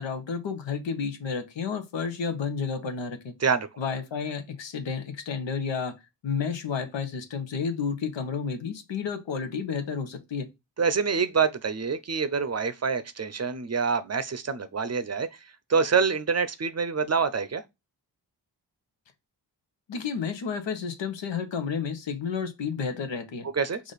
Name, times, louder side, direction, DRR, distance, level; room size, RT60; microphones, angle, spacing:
voice 1, 0.0-3.3 3.8-5.9 6.2-10.5 19.9-23.5, left 6 dB, 85° left, 1.0 m, -31 dB
voice 2, 10.8-17.6 23.4-23.8, right 5 dB, 35° right, 0.6 m, -26 dB
4.9 x 2.5 x 4.0 m
cardioid pair, 60°, 43 cm